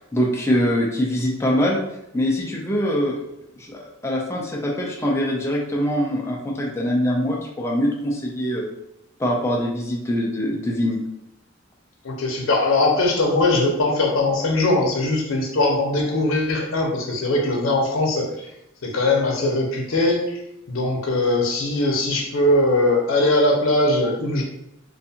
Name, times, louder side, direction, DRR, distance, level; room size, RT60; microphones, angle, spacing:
voice 1, 0.0-1.8 2.1-3.2 3.6-8.7 9.2-11.0, equal, 15° left, -2 dB, 0.3 m, -23 dB
voice 2, 12.0-18.5 18.8-20.4 20.7-24.4, left 2 dB, 80° left, 0 dB, 0.6 m, -20 dB
2.5 x 2.3 x 2.7 m, 0.82 s
head